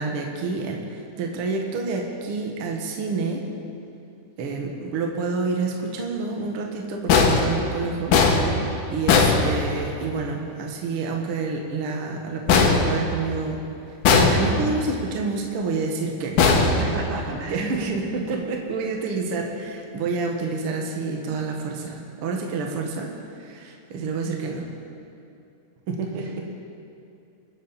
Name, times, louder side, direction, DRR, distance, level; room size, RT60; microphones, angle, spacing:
voice 1, 0.0-3.4 4.4-8.2 8.5-13.6 14.1-16.6 17.5-23.1 23.4-24.7 25.9-26.5, right 4 dB, 55° right, 1 dB, 1.8 m, -28 dB
sound 1, 7.1-10.1 12.5-13.6 14.0-14.9 16.4-17.5, left 4 dB, 85° left, 2.7 m, -20 dB
voice 2, 16.7-17.7, right 2 dB, 75° right, -1 dB, 3.2 m, -32 dB
25.5 x 8.8 x 4.1 m, 2.6 s
omnidirectional pair, 3.7 m